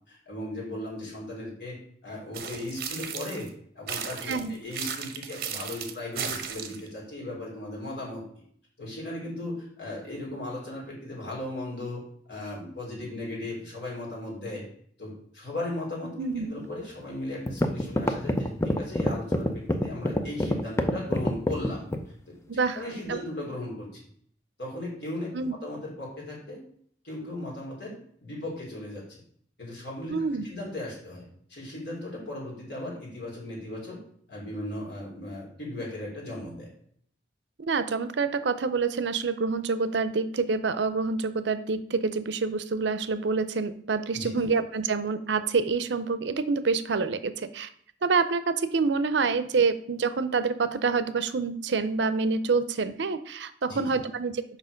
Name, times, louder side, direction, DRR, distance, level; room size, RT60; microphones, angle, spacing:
voice 1, 0.1-1.8 2.0-3.5 3.7-8.2 8.8-12.0 12.3-14.6 15.0-21.8 22.3-24.1 24.6-26.6 27.0-29.2 29.6-30.1 30.4-31.2 31.5-34.0 34.3-36.7 44.1-44.5 53.7-54.0, left 1 dB, 60° left, -3 dB, 3.8 m, -37 dB
sound 1, 2.3-3.5 3.9-6.9, right 7 dB, 55° right, 0.9 m, -35 dB
voice 2, 4.3-4.6 16.2-16.5 22.5-22.8 23.1-23.2 25.3-25.5 30.1-30.4 37.6-47.7 48.0-54.4, right 4 dB, 70° right, 12 dB, 0.6 m, -27 dB
sound 2, 17.0-17.1 17.5-22.1, left 1 dB, 15° left, 0.5 m, -25 dB
6.6 x 5.5 x 5.1 m, 0.62 s
head